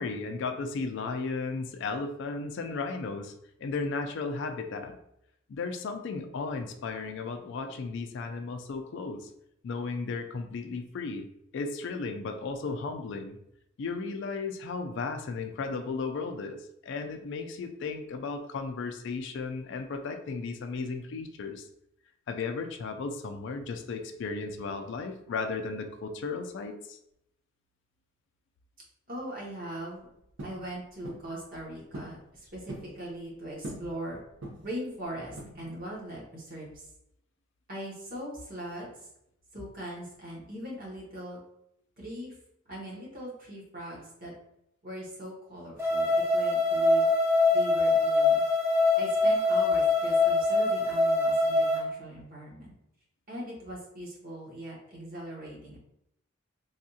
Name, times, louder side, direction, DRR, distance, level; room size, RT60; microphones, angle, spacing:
voice 1, 0.0-3.3 3.6-5.0 5.5-9.3 9.6-11.3 11.5-13.4 13.8-21.7 22.3-27.0, left 4 dB, 65° left, 6 dB, 0.4 m, -35 dB
voice 2, 29.1-30.0 30.4-34.2 34.6-36.9 37.7-38.9 39.5-41.4 42.0-42.3 42.6-44.3 44.8-47.1 47.5-48.4 48.9-52.7 53.3-55.8, right 1 dB, 45° right, -5 dB, 1.2 m, -40 dB
sound 1, 30.4-30.6 31.0-31.3 31.9-32.2 32.5-32.9 33.6-33.9 34.4-34.8 35.4-35.8, right 1 dB, 70° right, 0.6 m, -41 dB
sound 2, 45.8-51.8, left 2 dB, 15° right, 0.5 m, -24 dB
3.5 x 2.3 x 2.7 m, 0.78 s
head